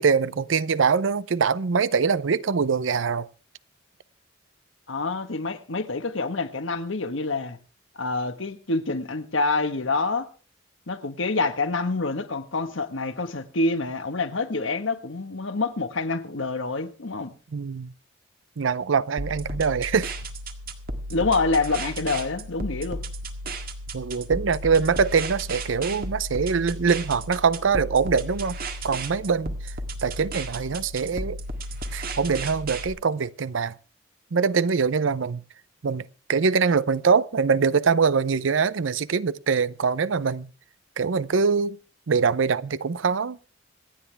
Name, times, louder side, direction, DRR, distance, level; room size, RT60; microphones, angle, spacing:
voice 1, 0.0-3.3 17.5-17.9 18.6-20.2 23.9-28.6 28.8-29.6 30.0-31.4 31.9-33.7 34.3-35.4 35.8-40.5 41.0-41.8 42.1-43.4, right 5 dB, 80° right, 0.6 m, -23 dB
voice 2, 4.9-7.6 7.9-10.3 10.9-17.3 21.1-23.0, left 3 dB, 80° left, 1.4 m, -27 dB
sound 1, 19.2-32.9, right 1 dB, 50° right, 1.7 m, -34 dB
26.0 x 9.4 x 3.4 m
head